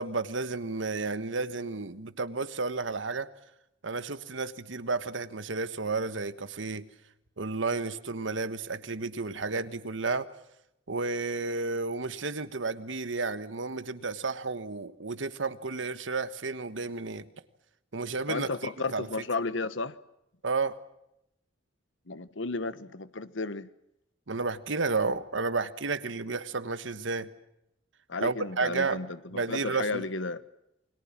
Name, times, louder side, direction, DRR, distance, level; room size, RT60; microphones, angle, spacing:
voice 1, 0.0-3.3 3.8-6.9 7.4-10.3 10.9-17.3 17.9-19.1 20.4-20.8 24.3-27.3 28.2-29.0 29.3-30.0, right 3 dB, 75° right, 13 dB, 1.3 m, -32 dB
voice 2, 18.3-19.9 22.1-23.7 28.1-30.4, left 3 dB, 75° left, 15 dB, 1.1 m, -33 dB
28.5 x 22.0 x 7.4 m, 0.83 s
head